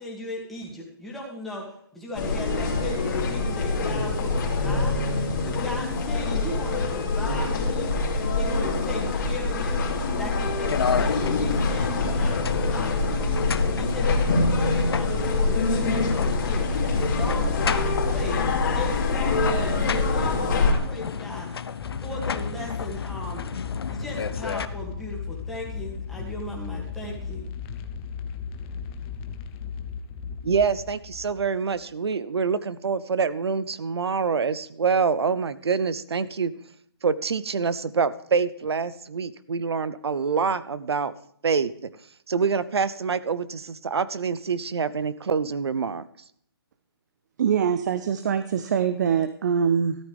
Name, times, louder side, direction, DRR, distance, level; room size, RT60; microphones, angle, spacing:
voice 1, 0.0-18.4 18.7-21.5 22.0-23.4 23.9-27.5, left 1 dB, ahead, -5 dB, 2.3 m, -37 dB
sound 1, 2.1-20.7, left 3 dB, 50° left, 2.8 m, -25 dB
sound 2, 10.6-24.6, left 6 dB, 70° left, 0.8 m, -32 dB
sound 3, 21.8-31.8, left 6 dB, 20° left, 0.7 m, -36 dB
voice 2, 30.4-36.5 37.0-41.1 41.4-41.7 42.3-46.1, right 5 dB, 85° right, 16 dB, 0.8 m, -26 dB
voice 3, 47.4-50.0, right 7 dB, 45° right, 11 dB, 0.7 m, -23 dB
13.5 x 11.5 x 3.5 m, 0.66 s
hypercardioid pair, 160°, 13 cm